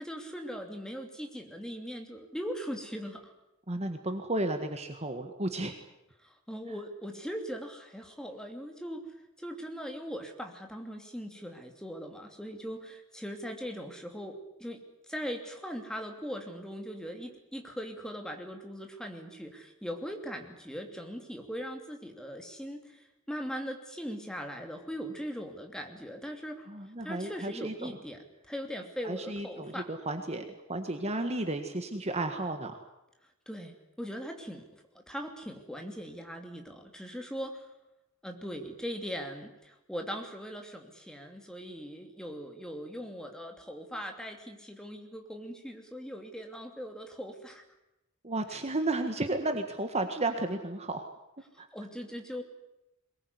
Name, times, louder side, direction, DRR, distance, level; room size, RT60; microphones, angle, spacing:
voice 1, 0.0-3.3 6.2-9.0 9.4-14.8 15.1-26.7 27.0-29.9 33.5-34.6 35.1-37.7 38.2-47.6 51.7-52.4, equal, 5° left, 4 dB, 2.9 m, -40 dB
voice 2, 3.7-5.7 26.7-28.0 29.0-32.8 48.2-51.1 51.6-51.7, right 2 dB, 30° right, 6 dB, 1.7 m, -33 dB
22.5 x 20.0 x 9.7 m, 0.91 s
head